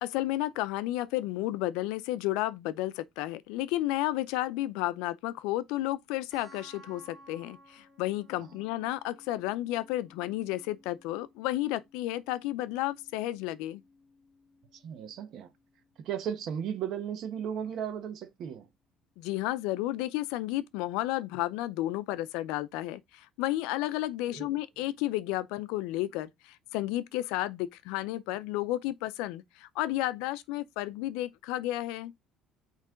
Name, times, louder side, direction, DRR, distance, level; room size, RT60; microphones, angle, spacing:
voice 1, 0.0-13.8 19.2-32.1, left 16 dB, 90° left, 0.5 m, -32 dB
sound 1, 6.3-17.3, equal, 10° left, 2.1 m, -58 dB
voice 2, 14.7-15.5 16.0-18.7 24.3-24.6, right 8 dB, 55° right, 1.2 m, -36 dB
8.2 x 3.2 x 3.7 m
cardioid pair, 140°, 0 cm